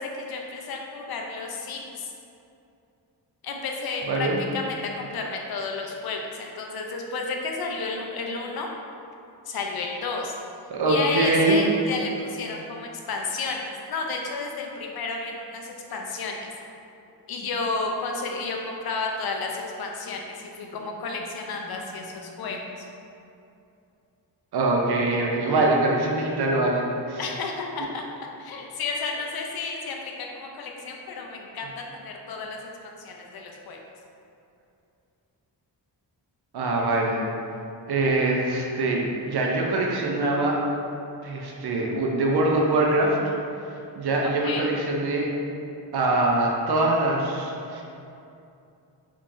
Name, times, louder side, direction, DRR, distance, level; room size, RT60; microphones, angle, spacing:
voice 1, 0.0-2.1 3.4-8.7 9.5-10.4 10.9-16.4 17.3-22.9 27.2-28.0 28.4-33.8 44.2-44.7, left 4 dB, 60° left, 1 dB, 0.5 m, -32 dB
voice 2, 4.1-4.4 10.7-11.6 24.5-27.2 36.5-37.3 37.9-40.6 41.2-43.2 44.0-45.3 45.9-47.8, right 2 dB, 65° right, -1 dB, 0.5 m, -23 dB
3.6 x 3.0 x 2.5 m, 2.6 s
wide cardioid pair, 140°, 43 cm